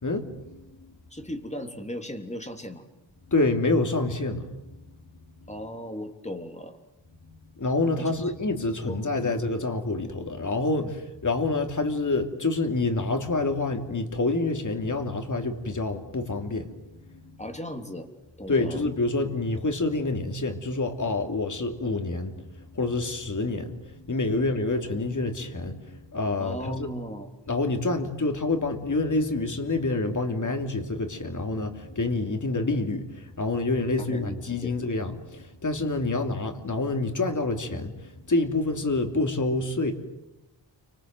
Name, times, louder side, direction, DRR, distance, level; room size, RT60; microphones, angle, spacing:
voice 1, 0.0-0.6 3.3-4.5 7.3-16.7 17.1-17.3 18.5-25.8 26.1-26.9 27.5-39.9, left 2 dB, 40° left, 3.1 m, -27 dB
voice 2, 1.1-2.8 5.5-6.8 8.0-8.3 8.8-9.3 10.8-10.9 17.4-18.1 18.4-18.8 24.3-24.4 26.4-27.3 34.0-34.7, left 1 dB, 15° left, 3.3 m, -37 dB
30.0 x 25.0 x 7.9 m
wide cardioid pair, 110°, 45 cm